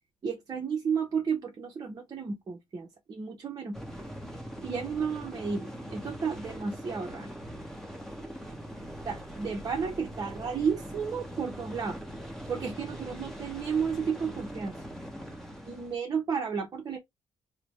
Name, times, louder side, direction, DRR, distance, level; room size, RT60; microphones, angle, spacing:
voice 1, 0.2-3.8 4.6-7.3 9.0-12.0 12.5-14.7 15.7-17.0, right 6 dB, 35° right, 0.7 m, -32 dB
sound 1, 3.7-15.9, equal, 5° left, 0.9 m, -42 dB
3.2 x 2.0 x 3.1 m
cardioid pair, 120°, 10 cm